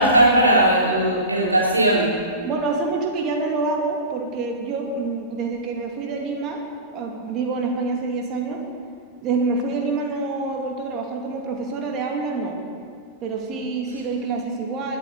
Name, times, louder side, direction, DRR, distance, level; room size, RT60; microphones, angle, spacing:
voice 1, 0.0-2.2, right 1 dB, 80° right, -4 dB, 4.1 m, -18 dB
voice 2, 2.4-6.6 6.9-8.6 9.2-12.6 13.2-15.0, right 3 dB, 35° right, 1 dB, 2.8 m, -26 dB
22.0 x 8.6 x 6.9 m, 2.3 s
figure-of-eight pair, 90°, 0 cm